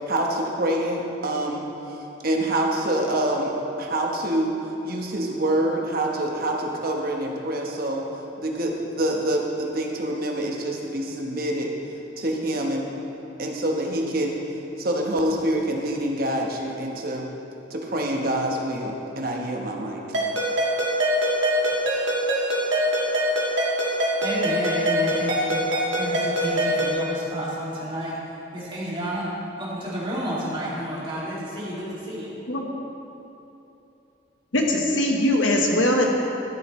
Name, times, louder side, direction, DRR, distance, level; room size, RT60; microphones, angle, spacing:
voice 1, 0.0-2.0 2.2-3.5 3.8-4.5 4.8-8.0 8.4-11.7 12.2-12.9 13.4-14.4 14.8-17.3 17.7-20.0, right 1 dB, 50° right, 0 dB, 1.1 m, -26 dB
Ringtone, 20.1-27.0, equal, 75° right, 1.8 m, -23 dB
voice 2, 24.2-25.6 26.0-28.1 28.5-29.3 29.6-32.3, equal, 25° right, -7 dB, 2.4 m, -30 dB
voice 3, 34.5-36.0, left 1 dB, 90° left, 1 dB, 1.3 m, -21 dB
12.0 x 10.5 x 3.2 m, 2.9 s
head